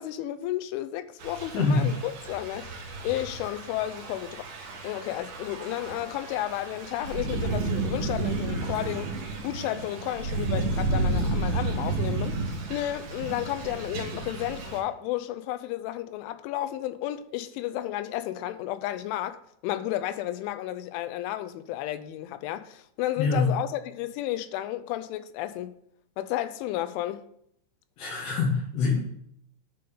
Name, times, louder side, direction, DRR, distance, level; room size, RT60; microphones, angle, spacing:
voice 1, 0.0-2.8 3.0-4.4 4.8-25.7 26.2-27.3, left 13 dB, 85° left, 3.1 m, -32 dB
Thunder / Rain, 1.2-14.8, right 3 dB, 55° right, 2.6 m, -32 dB
voice 2, 1.5-1.9 23.2-23.5 28.0-29.0, left 4 dB, 70° left, 3.8 m, -24 dB
10.5 x 4.2 x 6.7 m
omnidirectional pair, 5.4 m